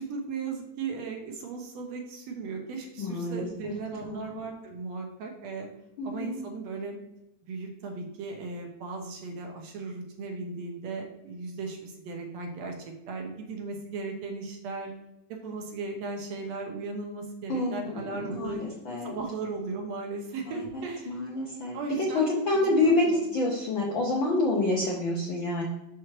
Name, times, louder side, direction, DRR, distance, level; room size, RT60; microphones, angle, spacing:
voice 1, 0.0-5.7 6.0-7.0 7.4-14.9 15.3-18.6 19.0-21.2 21.7-23.5, right 4 dB, 70° right, 2 dB, 1.9 m, -37 dB
voice 2, 3.0-3.7 4.1-4.2 6.0-6.4 17.5-19.1 20.7-21.7 22.1-25.6, left 2 dB, 70° left, -3 dB, 1.2 m, -27 dB
6.1 x 5.9 x 3.1 m, 0.91 s
omnidirectional pair, 3.4 m